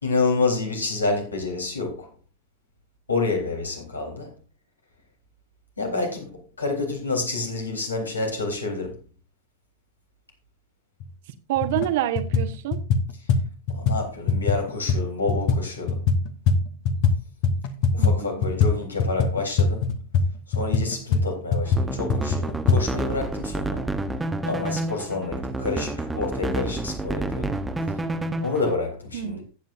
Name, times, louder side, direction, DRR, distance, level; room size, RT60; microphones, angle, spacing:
voice 1, 0.0-2.1 3.1-4.3 5.8-9.0 13.7-16.0 17.9-19.9 20.5-23.8 24.4-27.6 28.4-29.4, left 3 dB, 75° left, 3.6 m, -28 dB
sound 1, 11.0-11.1 11.6-11.9 12.1-17.2 17.4-22.8, left 4 dB, 45° left, 1.2 m, -22 dB
voice 2, 11.5-12.8 18.0-18.5 29.1-29.4, right 12 dB, 50° right, 1.1 m, -27 dB
sound 2, 21.7-28.8, right 2 dB, 10° right, 0.9 m, -29 dB
14.5 x 9.2 x 2.6 m
figure-of-eight pair, 90°, 0 cm